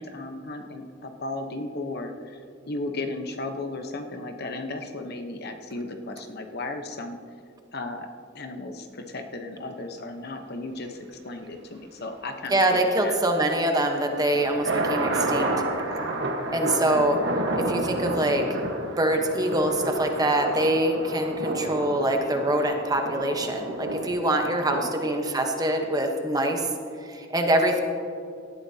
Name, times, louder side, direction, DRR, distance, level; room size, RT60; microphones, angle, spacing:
voice 1, 0.0-2.4 2.7-7.2 7.7-8.1 8.3-13.2 16.8-17.1 24.7-24.9, left 2 dB, 50° left, 5 dB, 1.0 m, -35 dB
voice 2, 12.5-15.5 16.5-17.2 17.6-18.5 19.0-26.7 27.0-27.8, right 1 dB, 20° right, 3 dB, 1.1 m, -24 dB
sound 1, 13.9-24.1, right 2 dB, 60° right, 1.4 m, -30 dB
18.5 x 13.0 x 2.8 m, 2.5 s
head